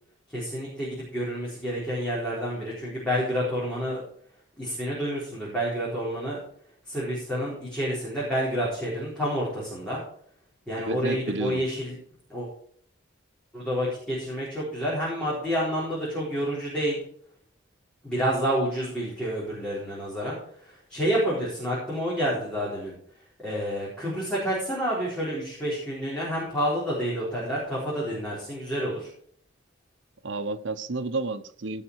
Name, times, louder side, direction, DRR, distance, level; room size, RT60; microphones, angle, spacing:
voice 1, 0.3-4.0 4.6-6.4 6.9-10.0 10.7-11.9 12.3-12.5 13.5-17.0 18.0-20.4 20.7-22.9 23.4-29.1, equal, 5° left, 4.0 m, -29 dB
voice 2, 10.8-11.6 30.2-31.8, right 3 dB, 70° right, 0.9 m, -31 dB
16.5 x 5.8 x 4.7 m
head